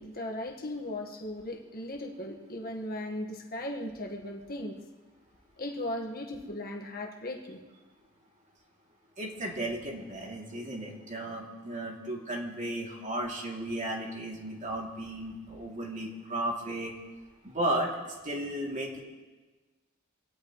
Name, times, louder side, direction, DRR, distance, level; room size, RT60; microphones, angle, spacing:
voice 1, 0.0-4.8 5.6-7.6, left 1 dB, 45° left, 1 dB, 1.6 m, -37 dB
voice 2, 9.2-16.9 17.4-19.0, right 1 dB, 35° right, -1 dB, 2.9 m, -34 dB
24.5 x 18.0 x 3.2 m, 1.2 s
head